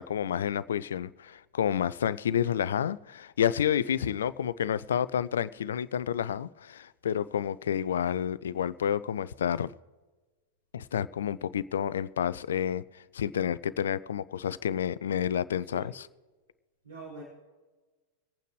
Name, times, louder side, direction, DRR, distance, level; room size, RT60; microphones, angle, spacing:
voice 1, 0.0-9.7 10.7-16.1, left 9 dB, 65° left, 0.4 m, -30 dB
voice 2, 16.8-17.2, right 3 dB, 75° right, 4.7 m, -44 dB
26.5 x 9.1 x 3.2 m
figure-of-eight pair, 90°, 0 cm